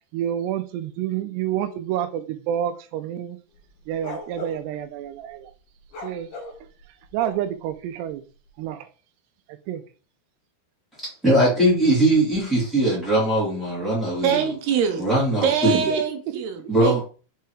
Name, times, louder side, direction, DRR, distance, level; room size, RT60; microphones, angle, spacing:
voice 1, 0.1-3.4 3.9-5.5 6.0-6.3 7.1-8.2 8.6-8.9 9.5-9.8 15.7-16.0 16.8-17.0, right 11 dB, 90° right, 9 dB, 2.4 m, -28 dB
Cão latindo (forte), 3.5-4.6 5.8-7.7, left 2 dB, 55° left, 2.6 m, -37 dB
voice 2, 11.2-14.4 15.0-15.9 16.7-17.0, right 1 dB, ahead, -8 dB, 1.4 m, -20 dB
voice 3, 14.2-15.0 15.4-17.0, right 7 dB, 75° right, 6 dB, 2.6 m, -24 dB
6.6 x 4.7 x 4.7 m, 0.37 s
omnidirectional pair, 5.5 m